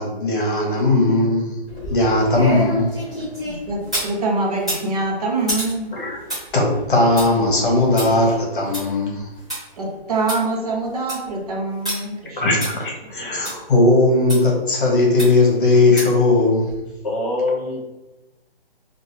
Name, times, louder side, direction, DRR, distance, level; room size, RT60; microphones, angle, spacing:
voice 1, 0.0-1.6 1.9-3.4 5.9-6.2 6.5-9.3 12.4-16.7, left 2 dB, 50° left, -1 dB, 1.2 m, -18 dB
sound 1, 1.7-4.1 4.6-9.6 10.0-10.1 10.3-10.4 10.8-11.3 11.8-12.0 12.6-12.7 13.4-13.5 14.3-14.4 15.2-15.5 16.0-16.2 16.7-16.8, equal, 5° right, 0.5 m, -29 dB
voice 2, 3.4-5.9 9.8-12.4, right 2 dB, 35° right, -1 dB, 0.8 m, -24 dB
voice 3, 17.0-17.8, left 2 dB, 35° left, -3 dB, 0.9 m, -23 dB
3.5 x 2.5 x 2.9 m, 1.0 s
hypercardioid pair, 165°, 32 cm